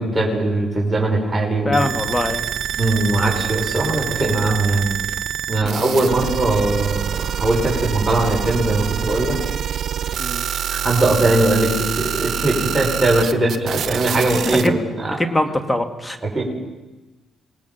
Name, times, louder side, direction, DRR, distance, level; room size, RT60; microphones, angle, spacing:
voice 1, 0.0-1.8 2.8-4.9 5.5-9.4 10.7-14.7 15.0-15.1 16.3-16.4, right 2 dB, 15° right, -2 dB, 6.0 m, -20 dB
voice 2, 1.7-2.4 5.6-5.8 10.2-10.5 14.6-14.8 15.2-16.2, left 1 dB, 15° left, 7 dB, 2.2 m, -22 dB
sound 1, 1.7-14.7, right 9 dB, 65° right, 1.0 m, -26 dB
27.5 x 20.5 x 5.9 m, 1.1 s
cardioid pair, 90°, 0 cm